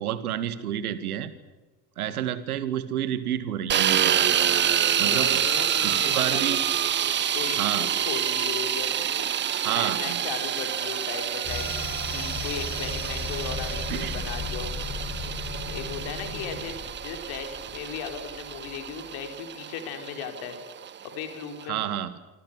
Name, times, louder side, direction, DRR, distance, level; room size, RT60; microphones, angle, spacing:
voice 1, 0.0-1.3 2.0-4.3 5.0-5.4 5.8-6.6 7.6-7.9 9.6-10.2 13.9-14.2 21.7-22.1, right 11 dB, 65° right, 14 dB, 2.2 m, -30 dB
sound 1, 3.7-21.6, right 9 dB, 25° right, 1.0 m, -27 dB
voice 2, 5.1-6.4 7.3-9.3 9.7-11.8 12.1-14.8 15.7-20.6 21.0-21.8, left 7 dB, 50° left, 6 dB, 4.6 m, -37 dB
sound 2, 11.4-19.0, left 5 dB, 35° left, 7.4 m, -36 dB
26.5 x 25.5 x 6.9 m, 1.2 s
figure-of-eight pair, 65°, 47 cm